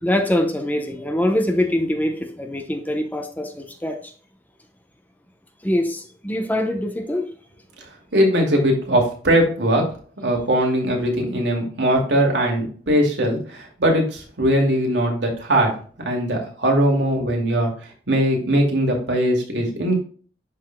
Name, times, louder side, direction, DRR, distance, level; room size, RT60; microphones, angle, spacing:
voice 1, 0.0-4.1 5.6-7.3, left 1 dB, 10° left, 0.8 m, -23 dB
voice 2, 8.1-9.9 10.2-15.7 16.0-17.7 18.1-19.9, right 1 dB, 85° right, 2.4 m, -20 dB
12.0 x 4.2 x 2.2 m
head